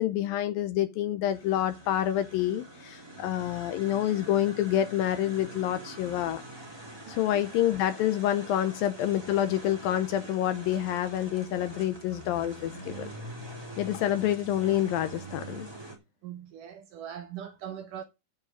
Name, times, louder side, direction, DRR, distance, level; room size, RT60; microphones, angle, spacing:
voice 1, 0.0-6.4 7.1-13.1 13.8-15.7, left 12 dB, 75° left, 2.2 m, -28 dB
sound 1, 1.3-16.0, right 2 dB, 10° right, 1.9 m, -44 dB
voice 2, 7.0-7.4 16.2-18.0, right 9 dB, 70° right, 2.1 m, -41 dB
14.0 x 5.1 x 5.0 m
omnidirectional pair, 4.6 m